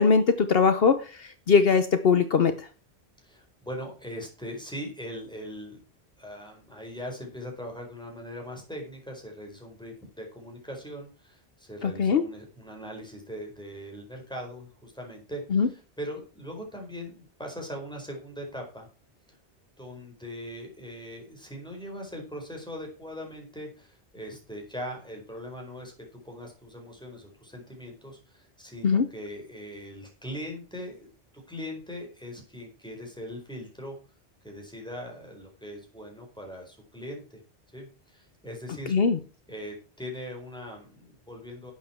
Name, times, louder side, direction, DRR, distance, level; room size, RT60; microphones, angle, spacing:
voice 1, 0.0-2.5 11.8-12.2 15.5-15.7 28.8-29.1 38.9-39.2, left 5 dB, 65° left, 10 dB, 1.1 m, -21 dB
voice 2, 3.2-5.8 6.2-18.9 19.8-25.9 26.2-31.1 31.5-33.9 34.4-37.4 37.7-38.9 39.5-41.7, equal, 5° left, 1 dB, 4.5 m, -40 dB
11.5 x 8.4 x 4.4 m, 0.35 s
omnidirectional pair, 1.1 m